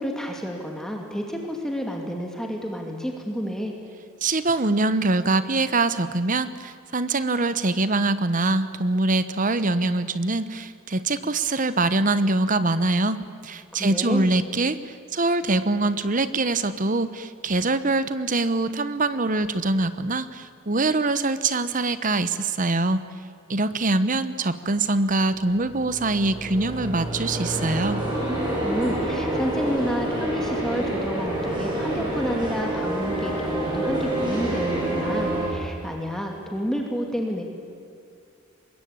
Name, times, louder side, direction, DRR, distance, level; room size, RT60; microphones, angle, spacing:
voice 1, 0.0-3.7 13.7-14.3 28.6-37.4, equal, ahead, 1 dB, 2.4 m, -30 dB
voice 2, 4.2-23.0 23.5-28.0, right 2 dB, 40° right, 13 dB, 1.0 m, -24 dB
sound 1, 25.4-35.5, right 1 dB, 20° right, 7.6 m, -27 dB
24.5 x 21.5 x 8.7 m, 2.4 s
head